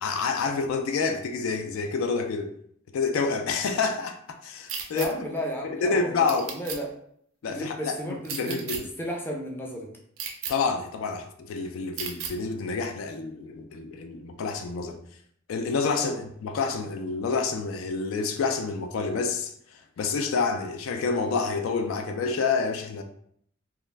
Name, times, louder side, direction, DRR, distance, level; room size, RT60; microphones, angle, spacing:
voice 1, 0.0-2.5 2.9-5.3 5.6-6.5 7.4-8.9 10.5-15.0 15.5-23.0, left 4 dB, 85° left, 6 dB, 0.3 m, -28 dB
sound 1, 4.7-5.1 6.3-6.8 8.2-8.8 10.2-10.5 12.0-12.3, right 7 dB, 75° right, 0.4 m, -33 dB
voice 2, 4.9-6.9 7.5-9.9 16.0-16.2, equal, 10° left, -1 dB, 0.4 m, -34 dB
2.3 x 2.1 x 3.2 m, 0.67 s
head